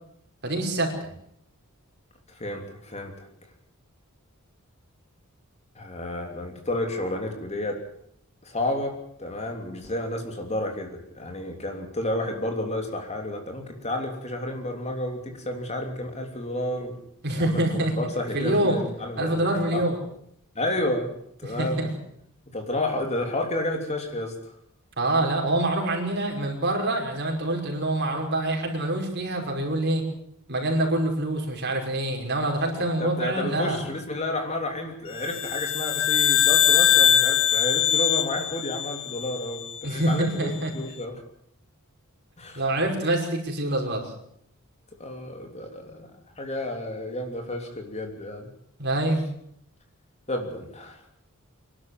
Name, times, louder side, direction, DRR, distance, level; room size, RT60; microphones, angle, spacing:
voice 1, 0.4-1.1 17.2-17.9 18.3-18.8 19.2-20.0 21.4-21.9 25.0-30.0 30.5-33.9 39.8-40.7 42.6-44.1 48.8-49.2, right 1 dB, 50° right, 1 dB, 5.6 m, -25 dB
voice 2, 2.3-3.3 5.7-7.8 8.4-17.0 17.4-19.8 20.5-21.1 21.4-21.9 22.5-24.3 32.7-39.6 39.9-41.2 42.4-43.1 45.0-46.1 46.4-48.5 50.3-51.0, left 1 dB, 30° left, 4 dB, 3.3 m, -31 dB
sound 1, 35.2-39.8, left 10 dB, 65° left, 1.6 m, -22 dB
25.5 x 12.0 x 9.4 m, 0.73 s
head